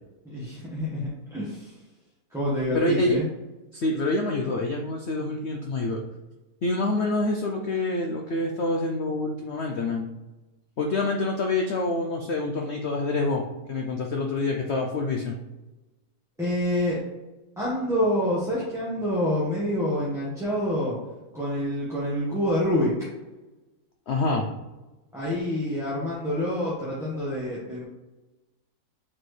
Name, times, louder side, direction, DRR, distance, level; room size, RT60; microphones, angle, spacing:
voice 1, 0.2-1.8 2.3-3.3 16.4-17.0 17.6-21.0 21.3-22.9 25.1-27.8, left 1 dB, ahead, -9 dB, 1.2 m, -27 dB
voice 2, 2.7-3.2 3.7-6.0 6.6-10.1 10.8-13.4 13.7-15.4 24.1-24.4, left 2 dB, 65° left, 2 dB, 0.6 m, -26 dB
7.2 x 4.4 x 3.3 m, 1.1 s
omnidirectional pair, 1.9 m